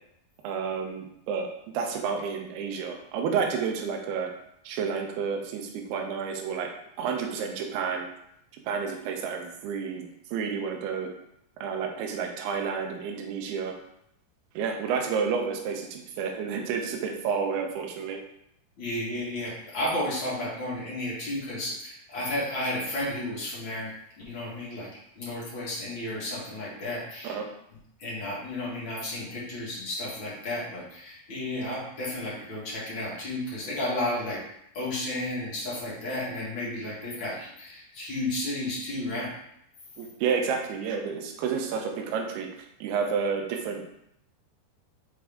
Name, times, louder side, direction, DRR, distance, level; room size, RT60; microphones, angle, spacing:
voice 1, 0.4-1.5 1.7-4.3 4.6-6.7 7.0-8.1 8.6-11.1 11.6-13.7 14.5-18.2 27.2-27.5 40.0-43.8, right 6 dB, 80° right, 2 dB, 2.7 m, -30 dB
voice 2, 18.8-23.9 24.2-24.9 25.1-27.4 28.0-34.4 34.7-39.3, left 1 dB, 50° left, -6 dB, 1.5 m, -32 dB
6.2 x 4.7 x 3.5 m, 0.76 s
omnidirectional pair, 4.9 m